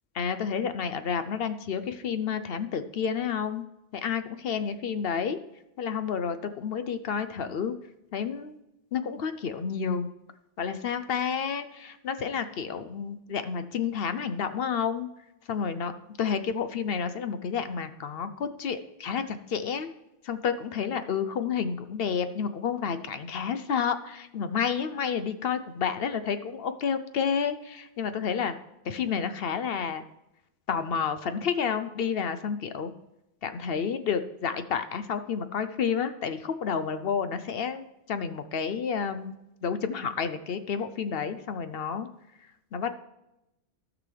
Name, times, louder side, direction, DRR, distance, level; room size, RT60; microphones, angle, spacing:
voice 1, 0.1-3.6 3.9-5.4 5.8-7.7 8.1-8.6 8.9-10.1 10.6-15.1 15.5-15.9 16.2-19.9 20.2-28.5 28.9-30.0 30.7-32.9 33.4-39.3 39.6-42.1 42.7-42.9, left 6 dB, 65° left, 10 dB, 0.8 m, -30 dB
15.5 x 6.1 x 3.3 m, 0.90 s
omnidirectional pair, 1.2 m